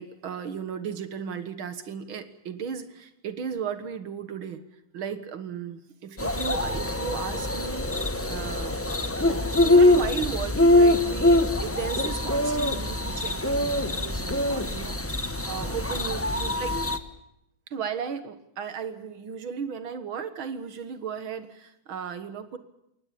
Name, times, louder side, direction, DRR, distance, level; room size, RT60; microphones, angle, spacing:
voice 1, 0.0-4.6 4.9-16.7 17.7-22.6, right 7 dB, 80° right, 10 dB, 2.3 m, -35 dB
sound 1, 6.2-17.0, left 1 dB, 15° left, 0.4 m, -23 dB
22.5 x 19.0 x 8.7 m, 0.81 s
omnidirectional pair, 2.2 m